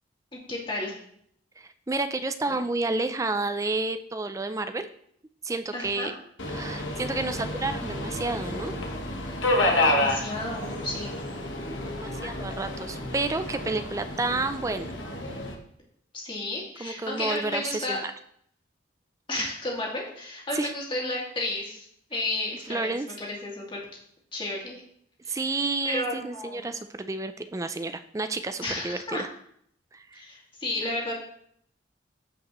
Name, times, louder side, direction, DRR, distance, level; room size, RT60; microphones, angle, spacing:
voice 1, 0.3-0.9 5.7-6.1 9.8-11.1 16.1-18.0 19.3-23.8 24.3-24.8 25.2-25.4 25.8-26.7 28.6-29.2 30.1-31.2, left 2 dB, 25° left, -3 dB, 2.3 m, -32 dB
voice 2, 1.6-4.9 5.4-6.1 6.5-8.7 11.8-14.9 16.8-18.1 20.5-20.7 22.7-23.1 25.3-29.3 29.9-30.2, right 3 dB, 15° right, 9 dB, 0.4 m, -30 dB
Subway metro underground, 6.4-15.5, left 1 dB, 80° left, 1.3 m, -30 dB
14.5 x 5.1 x 3.1 m, 0.68 s
head